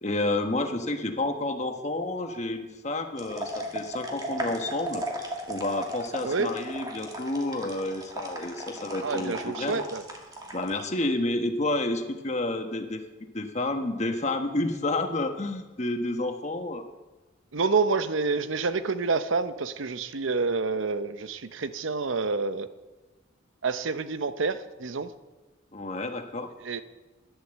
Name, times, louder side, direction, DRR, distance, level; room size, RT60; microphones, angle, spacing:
voice 1, 0.0-5.0 5.5-9.8 10.5-13.0 13.3-16.8 25.7-26.5, left 2 dB, 35° left, 6 dB, 1.1 m, -30 dB
sound 1, 3.1-10.8, right 1 dB, 20° right, 1.9 m, -36 dB
voice 2, 6.2-6.5 9.0-10.0 17.5-22.7 23.6-25.1 26.6-26.8, right 4 dB, 75° right, 12 dB, 0.7 m, -28 dB
11.5 x 11.0 x 7.4 m, 1.2 s
head